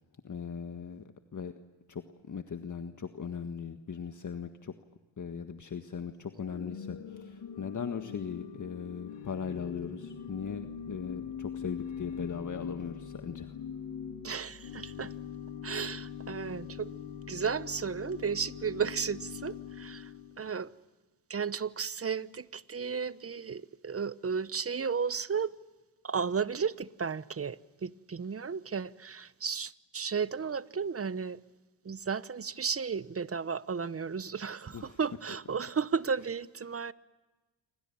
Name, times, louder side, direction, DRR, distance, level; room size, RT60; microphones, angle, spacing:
voice 1, 0.2-1.0 1.3-1.5 1.9-4.7 5.2-13.6 34.7-35.0, left 6 dB, 40° left, 1.7 m, -39 dB
Organ / Church bell, 6.3-20.4, left 7 dB, 70° left, 4.0 m, -42 dB
voice 2, 14.2-15.1 15.6-16.9 17.3-20.1 20.4-20.7 21.3-25.5 26.0-31.4 31.8-36.9, right 6 dB, 30° right, 1.0 m, -34 dB
28.0 x 25.0 x 7.2 m
supercardioid pair, 60°, 47 cm